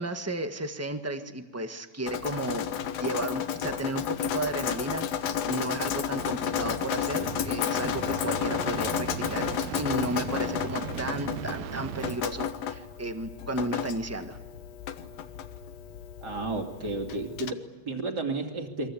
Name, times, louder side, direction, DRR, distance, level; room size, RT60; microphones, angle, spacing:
voice 1, 0.0-14.4, right 2 dB, 10° right, 7 dB, 0.6 m, -34 dB
Drip, 2.1-17.5, left 9 dB, 65° left, 2.3 m, -32 dB
sound 1, 4.6-12.2, right 10 dB, 75° right, 2.2 m, -39 dB
voice 2, 16.2-18.9, right 3 dB, 35° right, 3 dB, 3.1 m, -32 dB
29.0 x 23.0 x 8.6 m, 1.2 s
omnidirectional pair, 3.3 m